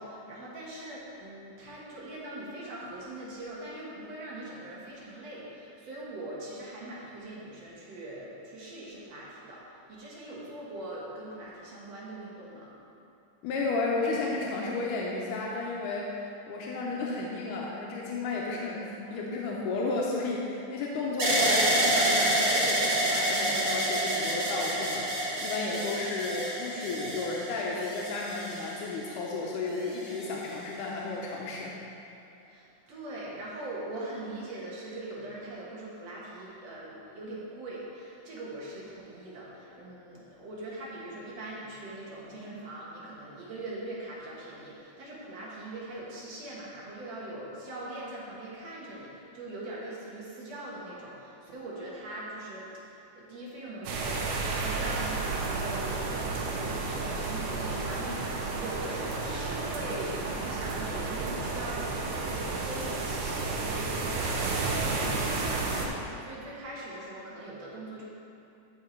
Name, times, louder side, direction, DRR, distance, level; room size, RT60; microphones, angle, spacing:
voice 1, 0.0-12.7 32.5-68.0, right 1 dB, 60° right, -6 dB, 2.5 m, -41 dB
voice 2, 13.4-31.8, left 3 dB, 90° left, -3 dB, 2.4 m, -33 dB
sound 1, 21.2-29.2 29.9-30.6, right 1 dB, 45° right, 0.7 m, -28 dB
sound 2, 53.8-65.9, right 3 dB, 75° right, 2.3 m, -32 dB
13.0 x 4.8 x 4.4 m, 2.8 s
omnidirectional pair, 3.6 m